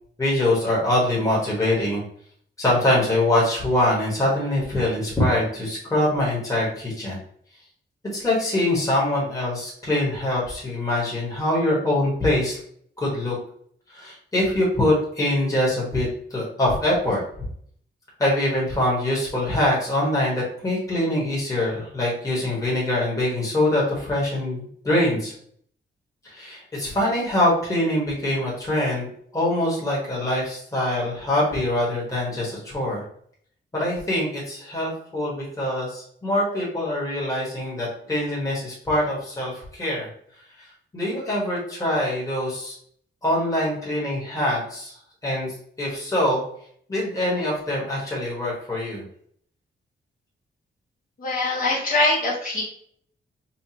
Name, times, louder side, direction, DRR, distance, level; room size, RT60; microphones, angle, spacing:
voice 1, 0.2-2.0 2.6-7.2 8.1-12.6 13.0-13.3 13.9-17.2 18.2-25.3 26.2-33.0 33.7-40.1 40.6-40.7 40.9-42.7 43.2-44.9 45.2-46.4 46.9-49.0, left 1 dB, 15° left, -5 dB, 1.4 m, -24 dB
voice 2, 51.2-52.6, left 2 dB, 45° left, -6 dB, 1.2 m, -22 dB
5.6 x 2.4 x 2.9 m, 0.62 s
wide cardioid pair, 175°, 20 cm